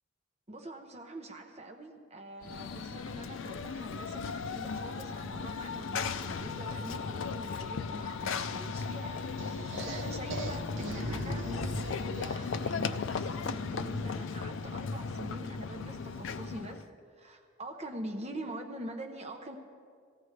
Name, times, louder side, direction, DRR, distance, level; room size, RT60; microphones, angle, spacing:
voice 1, 0.5-16.9 17.2-19.6, right 1 dB, 30° right, 4 dB, 0.9 m, -44 dB
Run / Train, 2.4-16.9, left 5 dB, 65° left, 0.4 m, -36 dB
sound 1, 9.4-12.9, right 1 dB, 65° right, 1.0 m, -39 dB
18.0 x 15.5 x 3.3 m, 2.2 s
head